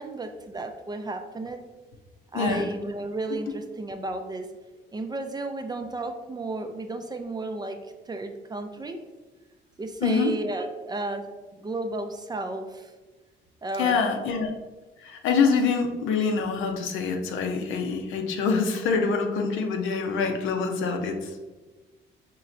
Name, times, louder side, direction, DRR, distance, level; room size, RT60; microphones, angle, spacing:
voice 1, 0.0-1.6 2.3-4.5 4.9-7.8 8.1-9.0 9.8-12.9 13.6-14.1, right 2 dB, 20° right, 6 dB, 0.3 m, -33 dB
voice 2, 10.0-10.3 13.8-14.5 15.0-21.4, left 5 dB, 80° left, 3 dB, 0.6 m, -25 dB
4.5 x 3.1 x 2.5 m, 1.2 s
cardioid pair, 90°, 20 cm